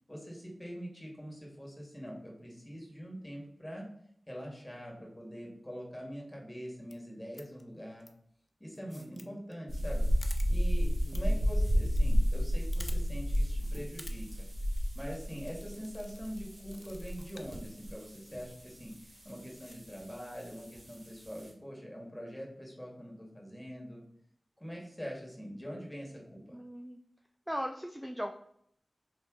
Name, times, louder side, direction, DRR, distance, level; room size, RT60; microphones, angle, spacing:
voice 1, 0.1-3.9 4.3-8.0 8.6-14.5 14.9-18.9 19.2-24.0 24.6-26.6, equal, 10° left, -1 dB, 1.7 m, -44 dB
sound 1, 6.8-6.9 7.3-7.6 8.0-8.1 8.7-9.3 9.5-9.6 9.8-9.9 10.2-10.5 11.1-11.2 11.5-12.0 12.3-12.4 12.7-13.0 13.3-13.4 13.8-14.2 14.6-14.8 15.5-16.4 16.7-17.5 18.1-18.2 18.8-18.9 19.4-19.8, left 2 dB, 45° left, 0.6 m, -50 dB
voice 2, 8.7-9.4 10.8-11.5 26.5-27.0 27.5-28.3, equal, 10° right, 4 dB, 0.4 m, -40 dB
sound 2, 9.7-21.5, equal, 60° right, 1.8 m, -32 dB
3.9 x 3.2 x 3.7 m, 0.69 s
cardioid pair, 45°, 0 cm